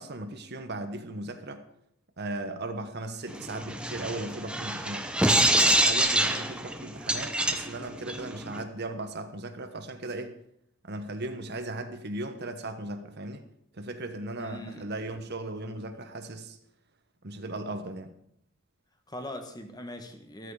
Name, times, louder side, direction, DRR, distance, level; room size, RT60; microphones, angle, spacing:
voice 1, 0.0-1.6 2.2-5.1 5.6-10.4 10.8-13.4 13.8-16.6 17.2-18.1, right 2 dB, 50° right, 8 dB, 1.3 m, -37 dB
sound 1, 3.3-8.6, right 1 dB, 5° right, 1.1 m, -26 dB
voice 2, 14.4-14.9 19.1-20.5, left 1 dB, 20° left, 6 dB, 1.4 m, -41 dB
13.5 x 13.5 x 4.9 m, 0.70 s
head